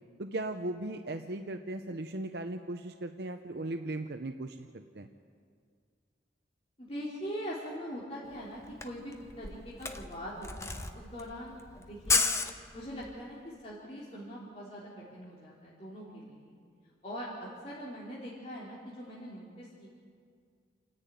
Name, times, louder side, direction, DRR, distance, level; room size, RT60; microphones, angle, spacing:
voice 1, 0.2-5.1, right 2 dB, 60° right, 6 dB, 0.8 m, -37 dB
voice 2, 6.8-12.2 12.7-16.6 17.0-19.9, equal, 35° left, -6 dB, 3.2 m, -42 dB
Camera, 8.3-8.4 8.6-13.2, left 4 dB, 15° left, 0.9 m, -32 dB
28.5 x 10.5 x 9.2 m, 2.1 s
head